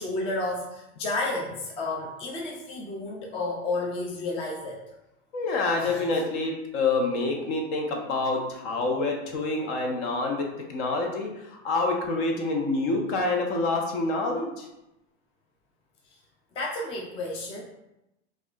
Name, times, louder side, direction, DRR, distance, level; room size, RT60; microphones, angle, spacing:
voice 1, 0.0-4.8 5.8-6.1 16.6-17.6, left 2 dB, 15° left, -1 dB, 0.3 m, -31 dB
voice 2, 5.3-14.7, left 3 dB, 50° left, 1 dB, 0.9 m, -27 dB
4.7 x 2.4 x 2.4 m, 0.91 s
hypercardioid pair, 125°, 34 cm